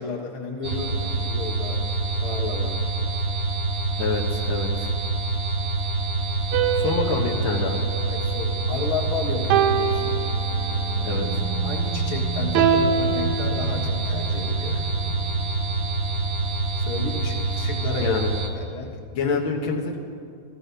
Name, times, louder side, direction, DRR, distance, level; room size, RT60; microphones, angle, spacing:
voice 1, 0.0-1.8 2.2-2.8 6.9-7.0 8.0-10.2 11.6-14.9 16.8-18.2 18.6-19.4, left 3 dB, 45° left, -1 dB, 1.9 m, -32 dB
sound 1, 0.6-18.5, right 3 dB, 50° right, 1.0 m, -26 dB
voice 2, 4.0-4.9 6.8-7.8 11.0-11.4 18.0-18.3 19.1-20.0, left 4 dB, 75° left, -1 dB, 1.2 m, -27 dB
sound 2, 6.5-8.9 9.5-11.0 12.5-14.2, right 7 dB, 85° right, 2.5 m, -25 dB
sound 3, 9.2-17.0, right 6 dB, 70° right, 1.7 m, -37 dB
15.5 x 14.5 x 5.6 m, 2.3 s
omnidirectional pair, 4.0 m